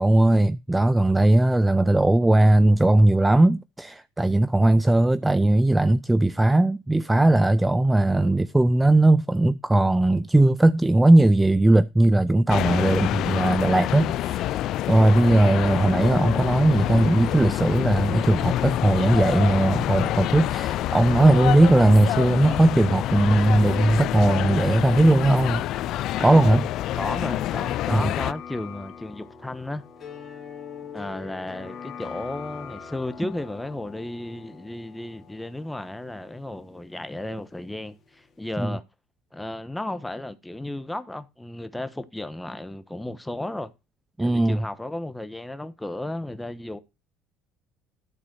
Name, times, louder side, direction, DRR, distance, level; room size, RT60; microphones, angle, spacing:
voice 1, 0.0-14.4 14.9-25.6 26.2-26.7 27.9-28.0 38.6-38.7 44.2-44.6, right 2 dB, 10° right, 0.5 m, -19 dB
sound 1, 12.5-28.3, left 13 dB, 60° left, 0.5 m, -27 dB
voice 2, 15.5-15.9 26.9-29.8 30.9-38.8 39.3-43.7 44.2-46.8, left 1 dB, 10° left, 1.2 m, -34 dB
sound 2, 26.4-38.1 38.4-38.5, left 7 dB, 40° left, 2.4 m, -43 dB
12.0 x 4.1 x 6.2 m
supercardioid pair, 85°, 0 cm